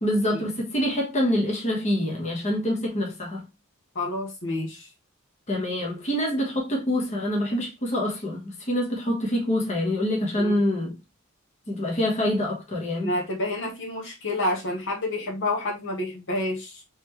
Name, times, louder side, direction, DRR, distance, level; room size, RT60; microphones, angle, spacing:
voice 1, 0.0-3.4 5.5-10.9 11.7-13.1, left 1 dB, 30° left, 1.3 m, -26 dB
voice 2, 3.9-4.9 10.4-10.6 13.0-16.8, left 1 dB, 60° left, 1.2 m, -29 dB
4.1 x 3.2 x 3.1 m
head